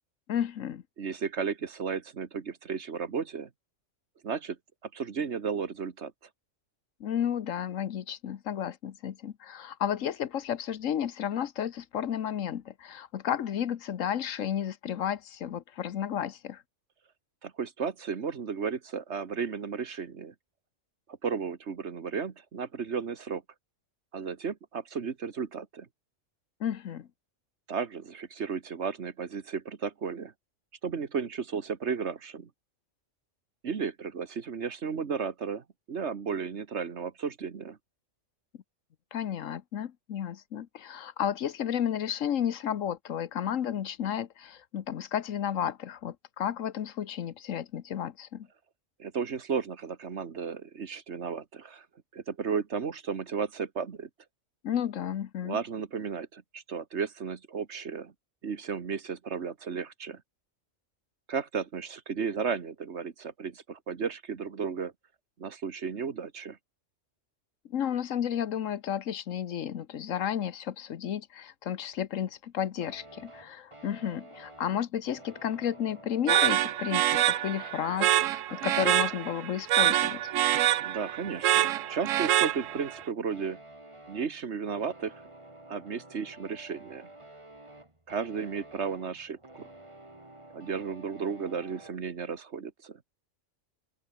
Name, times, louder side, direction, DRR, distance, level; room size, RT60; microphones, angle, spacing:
voice 1, 0.3-0.8 7.0-16.6 26.6-27.1 39.1-48.5 54.6-55.6 67.6-80.2, left 9 dB, 90° left, 1.3 m, -32 dB
voice 2, 1.0-3.5 4.2-4.6 4.8-6.1 17.4-20.3 21.2-23.4 24.1-25.9 27.7-30.3 30.8-32.5 33.6-37.8 49.0-51.8 52.1-54.1 55.4-58.1 58.4-60.2 61.3-64.9 65.4-66.6 80.8-83.6 84.1-85.2 85.7-87.1 88.1-89.7 90.5-93.0, right 6 dB, 60° right, 1.6 m, -34 dB
sound 1, 72.8-92.0, right 1 dB, 25° right, 3.1 m, -51 dB
sound 2, 76.3-83.0, right 13 dB, 90° right, 1.0 m, -26 dB
open air
omnidirectional pair, 1.3 m